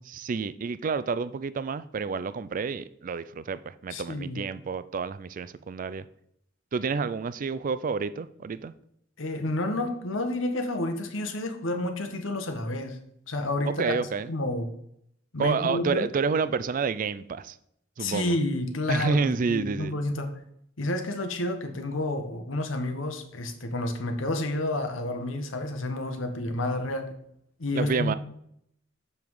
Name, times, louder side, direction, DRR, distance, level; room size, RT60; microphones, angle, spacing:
voice 1, 0.1-6.0 6.7-8.7 13.7-14.3 15.4-17.6 18.0-18.4 18.9-19.9 27.7-28.1, right 5 dB, 45° right, 0.4 m, -29 dB
voice 2, 3.9-4.4 9.2-13.0 13.3-14.0 14.3-14.7 15.3-16.1 18.0-20.3 20.8-27.1 27.6-28.2, left 1 dB, 85° left, 1.1 m, -30 dB
7.0 x 5.5 x 4.7 m
head